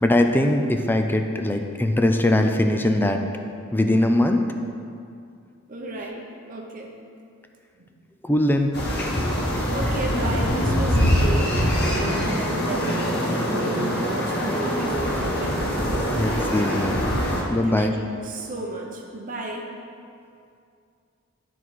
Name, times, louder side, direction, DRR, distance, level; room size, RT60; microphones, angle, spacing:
voice 1, 0.0-3.2 3.7-4.5 8.2-8.7 16.1-17.0 17.5-17.9, left 1 dB, 10° left, 5 dB, 0.5 m, -21 dB
voice 2, 5.7-6.9 9.7-11.6 12.0-16.3 17.6-18.0 18.2-19.7, right 2 dB, 40° right, 0 dB, 0.8 m, -33 dB
sound 1, 8.7-17.4, equal, 55° left, 1.4 m, -23 dB
12.0 x 4.1 x 4.6 m, 2.4 s
head